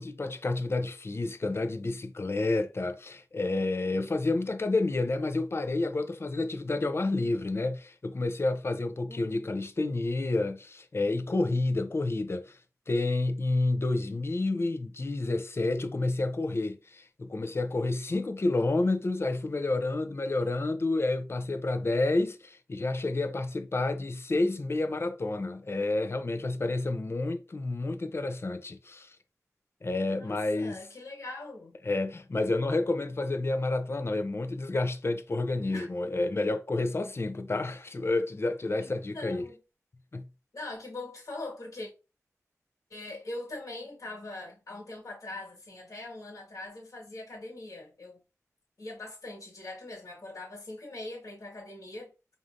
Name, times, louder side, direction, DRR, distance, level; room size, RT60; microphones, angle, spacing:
voice 1, 0.0-12.6 12.9-29.2 29.8-30.8 31.8-39.5 40.1-40.3, left 2 dB, 45° left, 0.5 m, -29 dB
voice 2, 9.1-9.5 30.1-31.7 35.7-36.1 38.8-39.6 40.5-41.9 42.9-48.2 48.8-52.1, left 2 dB, 75° left, 1.6 m, -42 dB
4.8 x 2.7 x 2.5 m
wide cardioid pair, 75°, 6 cm